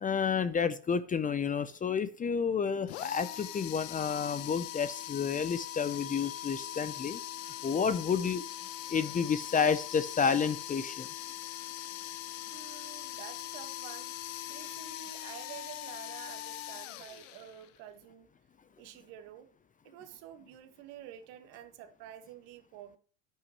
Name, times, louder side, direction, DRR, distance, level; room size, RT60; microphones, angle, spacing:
voice 1, 0.0-7.2 7.6-8.4 8.9-11.1, left 6 dB, 20° left, 0.7 m, -30 dB
sound 1, 2.9-17.8, left 14 dB, 80° left, 1.1 m, -41 dB
voice 2, 12.5-14.1 14.5-18.3 18.8-19.5 19.8-23.0, right 11 dB, 65° right, 1.9 m, -49 dB
10.5 x 9.7 x 3.1 m
supercardioid pair, 100°, 37 cm